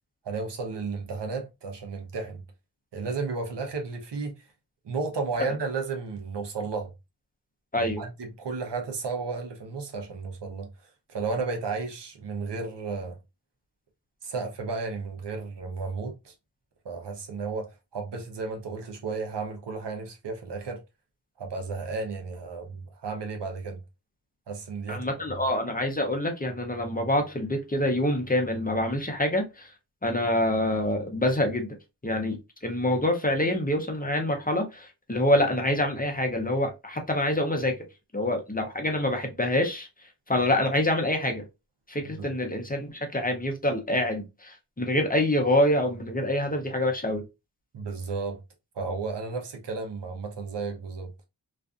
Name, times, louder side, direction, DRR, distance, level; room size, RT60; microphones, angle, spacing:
voice 1, 0.2-2.4 2.9-4.4 4.8-6.9 7.7-10.7 11.1-13.2 14.2-16.3 16.8-20.8 21.4-23.8 24.5-25.4 42.2-42.3 47.7-48.4 48.8-51.1, right 4 dB, 80° right, 0.7 m, -33 dB
voice 2, 24.9-29.7 30.0-31.7 32.0-37.8 38.1-39.9 40.3-41.4 41.9-47.2, left 1 dB, 20° left, 0.6 m, -26 dB
2.4 x 2.4 x 2.4 m
wide cardioid pair, 70°, 41 cm